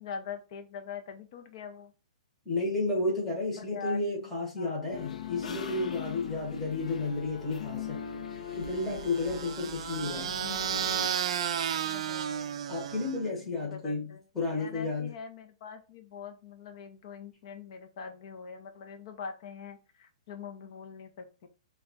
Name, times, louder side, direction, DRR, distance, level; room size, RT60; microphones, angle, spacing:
voice 1, 0.0-1.9 3.6-4.0 4.6-4.8 11.8-12.6 13.6-21.5, left 5 dB, 45° left, 0.7 m, -43 dB
voice 2, 2.4-8.0 8.5-10.3 12.7-15.1, left 2 dB, 5° left, 1.0 m, -32 dB
sound 1, 4.9-11.1, left 6 dB, 80° left, 0.7 m, -40 dB
sound 2, 8.8-13.3, right 9 dB, 55° right, 0.3 m, -33 dB
3.4 x 2.3 x 3.9 m
hypercardioid pair, 165°, 4 cm